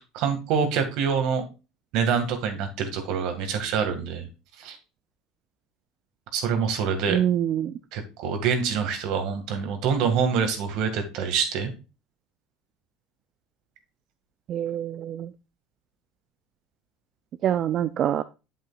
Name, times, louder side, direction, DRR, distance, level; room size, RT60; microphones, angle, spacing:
voice 1, 0.1-1.4 1.9-4.3 4.6-4.8 6.3-7.2 7.9-11.7, right 6 dB, 65° right, 2.0 m, -26 dB
voice 2, 7.1-7.7 14.5-15.3 17.4-18.2, right 10 dB, 45° right, 0.4 m, -25 dB
8.2 x 7.7 x 2.4 m
supercardioid pair, 120°, 0 cm